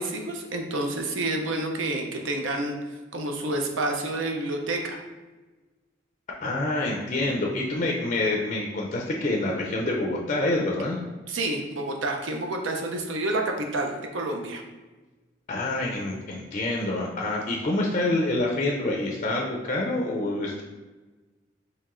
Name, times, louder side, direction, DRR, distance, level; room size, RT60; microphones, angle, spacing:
voice 1, 0.0-2.8 3.1-5.0 11.3-14.6, right 2 dB, 75° right, 2 dB, 0.6 m, -29 dB
voice 2, 6.4-11.0 15.5-20.6, left 2 dB, 40° left, -2 dB, 0.4 m, -27 dB
4.6 x 3.2 x 2.5 m, 1.2 s
head